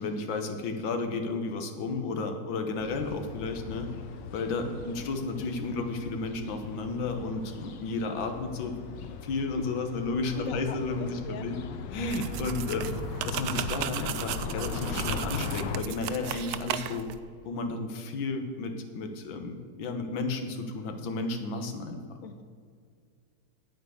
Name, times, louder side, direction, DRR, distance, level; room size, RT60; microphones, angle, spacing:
voice 1, 0.0-3.9 4.3-11.6 11.9-12.9 13.2-17.1 17.5-22.0, left 3 dB, 90° left, 5 dB, 1.8 m, -33 dB
sound 1, 2.8-15.8, left 6 dB, 75° left, 1.4 m, -39 dB
voice 2, 10.3-10.8 11.2-11.4 22.2-22.4, left 4 dB, 55° left, 8 dB, 1.1 m, -39 dB
sound 2, 12.1-17.2, right 11 dB, 75° right, 0.9 m, -35 dB
8.9 x 8.8 x 6.4 m, 2.1 s
omnidirectional pair, 2.0 m